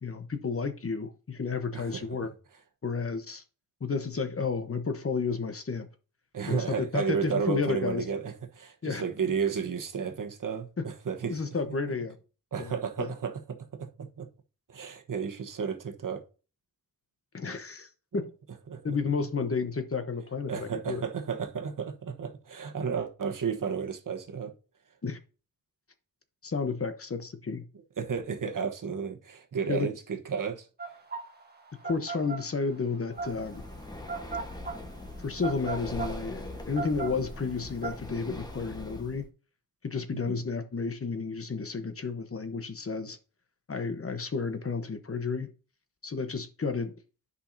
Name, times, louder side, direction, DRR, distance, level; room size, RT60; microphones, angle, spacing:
voice 1, 0.0-2.3 2.8-3.4 3.8-5.9 6.5-8.0 8.8-9.0 10.8-10.9 11.3-12.2 12.6-13.1 17.3-18.3 18.8-21.0 25.0-25.2 26.4-27.6 29.7-29.9 31.8-33.6 35.2-39.3 39.8-43.2 43.7-45.5 46.0-46.9, left 4 dB, 40° left, 1.0 m, -32 dB
voice 2, 1.7-2.0 6.3-11.4 12.5-13.9 14.2-14.3 14.7-16.2 18.7-19.0 20.5-24.5 28.0-30.7 40.3-40.4, right 6 dB, 65° right, 1.2 m, -32 dB
sound 1, 30.8-37.9, right 4 dB, 30° right, 1.6 m, -37 dB
Breathing, 33.1-39.2, left 1 dB, 10° left, 1.2 m, -42 dB
10.0 x 5.5 x 2.7 m
wide cardioid pair, 100°, 35 cm